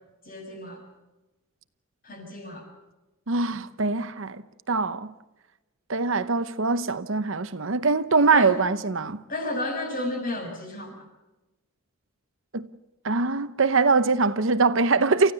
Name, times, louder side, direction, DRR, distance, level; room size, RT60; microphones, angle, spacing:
voice 1, 0.2-0.8 2.0-2.7 8.3-8.6 9.3-11.0, left 1 dB, 40° left, 6.6 m, -32 dB
voice 2, 3.3-4.4 4.7-5.1 5.9-9.2 12.5-12.7 13.0-15.3, right 4 dB, 60° right, 0.9 m, -23 dB
29.5 x 15.0 x 6.9 m
head